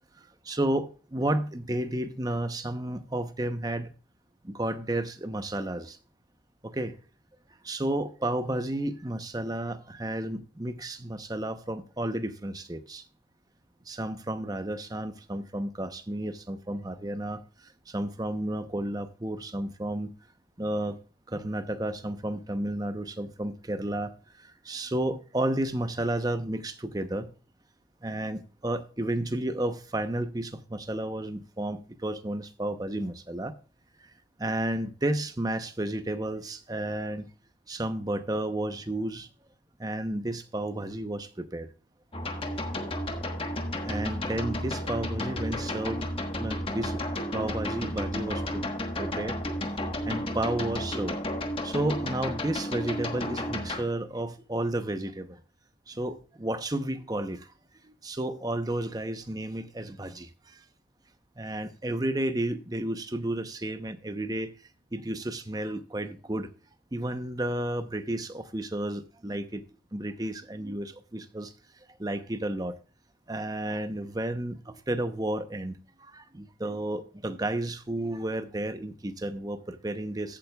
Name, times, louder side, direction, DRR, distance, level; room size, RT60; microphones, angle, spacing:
voice 1, 0.4-3.9 4.4-6.0 6.6-7.0 7.6-13.0 13.9-20.1 20.6-21.0 21.3-24.1 24.4-27.3 28.0-33.6 34.0-34.1 34.4-37.3 37.7-39.3 39.8-41.7 42.6-42.8 43.9-46.1 46.4-47.0 47.3-48.6 49.0-49.4 50.0-51.2 51.6-55.4 55.9-57.5 57.8-60.6 61.4-64.5 64.9-66.5 66.9-69.6 69.9-71.5 72.0-72.8 73.3-80.4, right 1 dB, 20° right, 0.8 m, -32 dB
sound 1, 42.1-53.8, left 1 dB, 30° left, 1.3 m, -32 dB
14.5 x 8.8 x 2.3 m
head